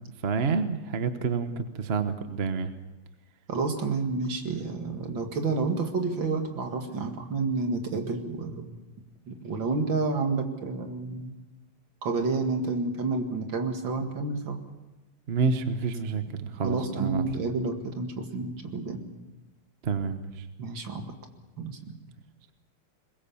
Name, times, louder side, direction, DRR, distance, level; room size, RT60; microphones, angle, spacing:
voice 1, 0.2-2.7 15.3-17.2 19.8-20.5, right 5 dB, 40° right, 9 dB, 1.1 m, -28 dB
voice 2, 3.5-8.7 9.3-11.3 12.0-14.6 16.6-19.0 20.6-21.1 21.6-21.9, right 3 dB, 60° right, 5 dB, 2.7 m, -30 dB
22.5 x 20.5 x 7.1 m, 1.1 s
omnidirectional pair, 2.4 m